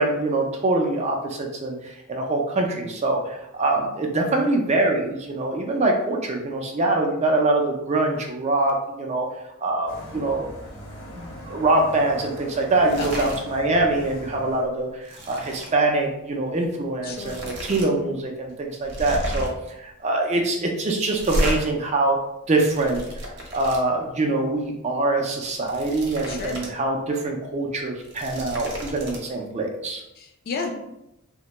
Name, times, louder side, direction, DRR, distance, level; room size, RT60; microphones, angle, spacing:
voice 1, 0.0-9.3 9.6-10.5 11.1-19.5 19.8-22.2 22.5-23.1 23.5-30.0, right 2 dB, 30° right, 1 dB, 0.3 m, -24 dB
sound 1, 9.9-14.6, equal, 80° left, 0.9 m, -40 dB
sound 2, 12.8-13.4 13.8-14.0 14.4-15.7 16.7-16.8 17.1-17.9 18.2-18.3 18.8-19.7 21.1-21.6 22.4-23.8 25.4-26.7 27.1-27.2 27.9-29.2, equal, 50° right, 0.7 m, -32 dB
voice 2, 13.0-13.3 17.0-17.4 26.3-26.6 30.2-30.7, left 4 dB, 40° left, 2 dB, 0.4 m, -31 dB
3.2 x 2.1 x 2.9 m, 0.88 s
head